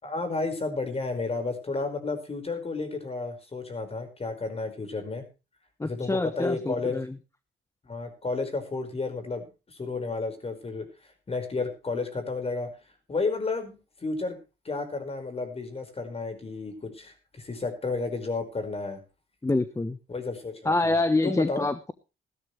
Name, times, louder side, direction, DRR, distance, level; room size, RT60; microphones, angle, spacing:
voice 1, 0.0-5.2 5.8-7.0 7.8-10.9 11.3-12.7 13.1-14.4 14.6-19.0 20.1-21.0 21.2-21.7, left 3 dB, 30° left, 8 dB, 5.1 m, -32 dB
voice 2, 5.8-7.2 19.4-20.0 20.6-21.9, left 2 dB, 15° left, 11 dB, 1.1 m, -26 dB
16.5 x 13.0 x 3.3 m, 0.31 s
cardioid pair, 90°, 20 cm